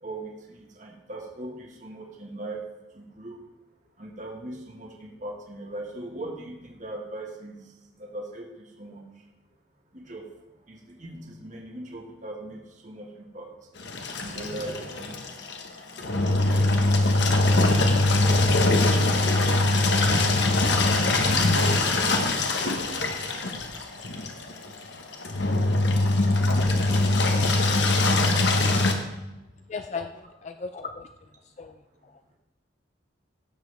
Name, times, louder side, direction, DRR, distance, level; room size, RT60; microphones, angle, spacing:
voice 1, 0.0-2.6 2.9-3.4 4.0-7.6 8.0-8.5 8.8-9.1 9.9-10.2 10.7-13.5 14.2-15.2 15.9-16.0 21.2-22.2, right 1 dB, 40° right, 0 dB, 1.5 m, -39 dB
Engine, 13.8-28.9, left 2 dB, 65° left, 1.1 m, -22 dB
voice 2, 29.7-31.1 31.6-31.7 32.0-32.1, left 5 dB, 35° left, 8 dB, 0.3 m, -36 dB
16.5 x 7.2 x 3.4 m, 0.98 s
head